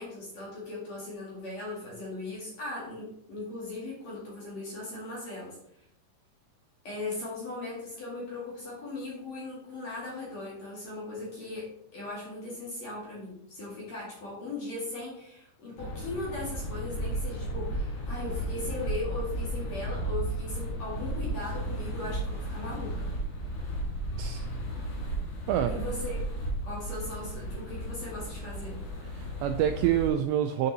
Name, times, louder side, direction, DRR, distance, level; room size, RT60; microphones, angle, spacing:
voice 1, 0.0-5.9 6.8-23.1 25.7-26.3 26.6-28.8, left 2 dB, 45° left, -5 dB, 2.8 m, -38 dB
sound 1, 15.8-30.1, right 1 dB, 60° left, 4.9 m, -34 dB
voice 2, 29.1-30.7, right 10 dB, 85° right, 7 dB, 2.6 m, -27 dB
9.0 x 6.7 x 4.1 m, 0.76 s
omnidirectional pair, 5.5 m